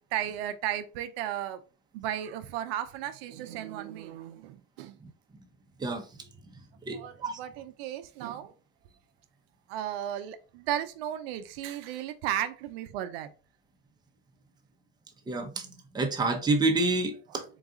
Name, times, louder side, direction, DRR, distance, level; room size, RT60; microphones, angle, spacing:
voice 1, 0.1-1.6 1.9-5.0 6.9-8.5 9.7-13.3 17.3-17.4, right 11 dB, 75° right, 0.6 m, -35 dB
voice 2, 6.8-7.4 15.3-17.4, right 3 dB, 15° right, 0.8 m, -28 dB
3.9 x 2.4 x 3.6 m
supercardioid pair, 110°, 31 cm